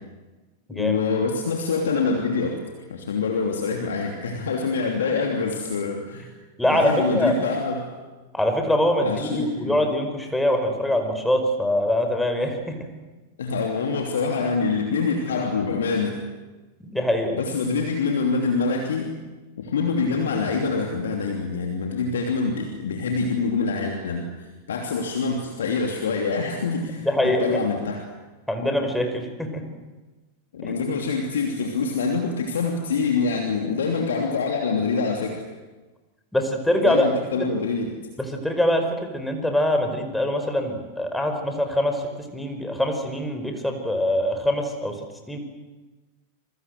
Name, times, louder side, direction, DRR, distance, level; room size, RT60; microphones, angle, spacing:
voice 1, 0.7-2.6 2.9-6.3 6.7-7.9 9.0-9.8 13.4-16.2 17.3-19.1 19.6-28.0 28.6-28.7 30.5-35.4 36.8-38.0, left 4 dB, 65° left, 3 dB, 3.0 m, -25 dB
voice 2, 6.6-7.4 8.3-12.8 16.8-17.4 27.0-27.6 28.5-29.7 30.6-30.7 36.3-37.1 37.4-37.5 38.2-45.0 45.3-45.4, left 1 dB, 5° left, 5 dB, 5.1 m, -23 dB
27.5 x 23.5 x 8.0 m, 1.2 s
figure-of-eight pair, 90°, 0 cm